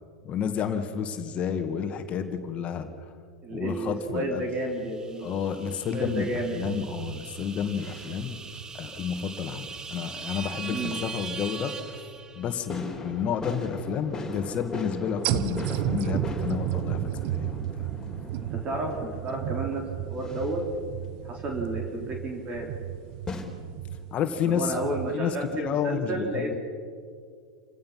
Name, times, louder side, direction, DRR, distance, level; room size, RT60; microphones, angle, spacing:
voice 1, 0.2-2.9 3.5-4.4 5.2-8.4 8.7-12.0 12.3-17.9 24.1-24.8 25.1-26.5, left 7 dB, 35° left, 7 dB, 2.0 m, -30 dB
voice 2, 3.4-6.6 10.7-11.0 18.4-19.8 20.1-20.6 21.2-22.7 24.4-26.5, right 2 dB, 35° right, 1 dB, 3.9 m, -32 dB
sound 1, 3.7-7.2 7.6-8.3 11.2-11.3 12.7-23.4, left 3 dB, 15° left, 4.2 m, -41 dB
sound 2, 4.7-12.8, right 5 dB, 20° right, 1.2 m, -41 dB
sound 3, 6.0-9.8 10.2-10.3 15.2-25.1, right 13 dB, 55° right, 0.9 m, -34 dB
28.5 x 16.5 x 6.0 m, 2.1 s
hypercardioid pair, 100°, 3 cm